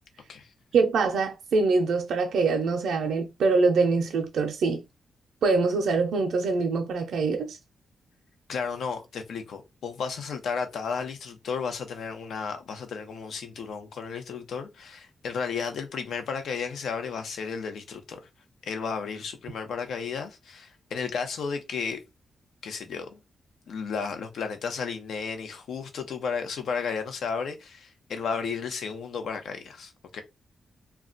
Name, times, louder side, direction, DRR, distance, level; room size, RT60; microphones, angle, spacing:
voice 1, 0.7-4.8 5.4-7.6, right 4 dB, 80° right, 0.5 m, -24 dB
voice 2, 8.5-18.2 18.6-22.0 22.6-23.2 23.7-30.2, left 5 dB, 75° left, 0.7 m, -33 dB
2.3 x 2.2 x 3.8 m
wide cardioid pair, 150°, 0 cm